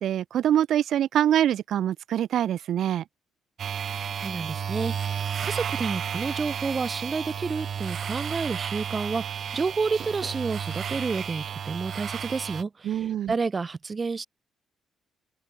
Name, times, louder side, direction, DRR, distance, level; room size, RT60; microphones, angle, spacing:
voice 1, 0.0-3.0 12.8-13.3, right 11 dB, 70° right, 1.9 m, -24 dB
sound 1, 3.6-12.6, right 8 dB, 55° right, 1.9 m, -32 dB
voice 2, 3.9-14.3, right 4 dB, 30° right, 5.2 m, -30 dB
open air
cardioid pair, 90°, 0 cm